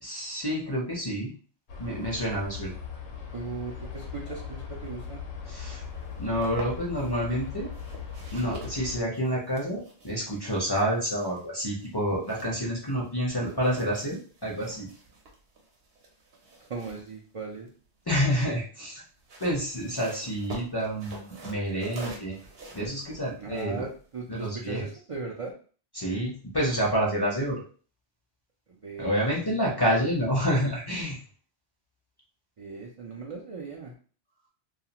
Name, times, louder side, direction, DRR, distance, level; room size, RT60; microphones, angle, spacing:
voice 1, 0.0-1.3 1.8-2.7 5.5-5.8 6.2-7.7 8.3-14.9 18.1-19.0 19.4-22.3 22.7-23.8 24.3-24.8 25.9-27.6 29.0-31.2, equal, 25° left, -4 dB, 0.6 m, -28 dB
sound 1, 1.7-9.0, left 6 dB, 85° left, 0.9 m, -39 dB
voice 2, 3.3-5.2 16.7-17.7 23.4-25.5 28.8-29.6 32.6-33.9, right 4 dB, 50° right, -2 dB, 0.4 m, -38 dB
sound 2, 6.0-7.1 7.7-13.1 13.4-18.0 19.0-24.6, right 2 dB, 70° right, 0.9 m, -47 dB
2.4 x 2.4 x 2.8 m, 0.40 s
omnidirectional pair, 1.1 m